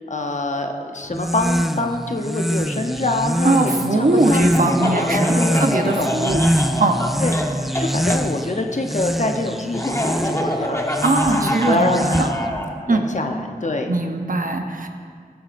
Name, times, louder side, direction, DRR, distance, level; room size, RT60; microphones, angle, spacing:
voice 1, 0.1-6.1 7.2-7.4 7.8-12.3 12.9-14.0, left 2 dB, 50° left, 4 dB, 0.8 m, -25 dB
sound 1, 1.1-12.6, equal, ahead, 0.3 m, -24 dB
voice 2, 3.4-6.5 6.8-7.0 11.0-12.3 12.9-13.1 13.9-14.9, right 2 dB, 60° right, 5 dB, 0.8 m, -20 dB
Laughter, 4.5-8.2 9.7-12.7, equal, 20° left, 1.0 m, -25 dB
15.0 x 8.1 x 2.5 m, 2.1 s
wide cardioid pair, 45°, 16 cm